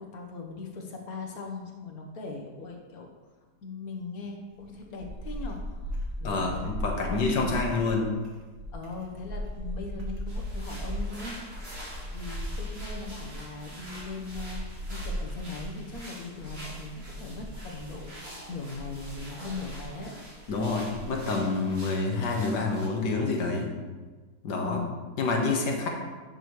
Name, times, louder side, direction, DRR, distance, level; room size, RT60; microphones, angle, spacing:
voice 1, 0.0-3.1 3.6-6.6 6.9-7.8 8.7-11.8 12.1-14.6 14.9-20.1 24.6-25.0, left 3 dB, 60° left, 1 dB, 1.5 m, -40 dB
sound 1, 4.5-21.4, equal, 45° right, 1.6 m, -38 dB
voice 2, 6.2-8.1 20.5-23.7 24.4-24.8 25.2-25.9, left 3 dB, 80° left, 1 dB, 1.8 m, -27 dB
sound 2, 10.3-22.9, right 1 dB, 85° right, 3.2 m, -46 dB
9.5 x 6.3 x 3.1 m, 1.4 s
omnidirectional pair, 1.8 m